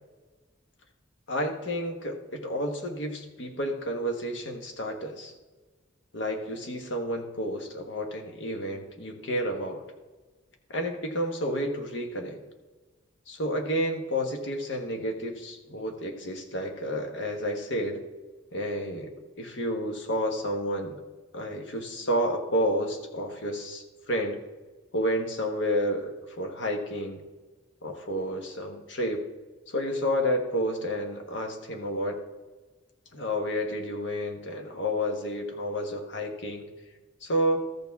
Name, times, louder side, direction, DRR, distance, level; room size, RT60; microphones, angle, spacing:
voice 1, 1.3-5.3 6.1-9.8 10.7-12.4 13.3-18.0 18.5-21.0 21.3-24.4 24.9-27.2 27.8-29.2 29.7-32.2 33.1-36.7 37.2-37.6, equal, 65° left, 4 dB, 1.2 m, -30 dB
13.5 x 6.7 x 3.5 m, 1.3 s
head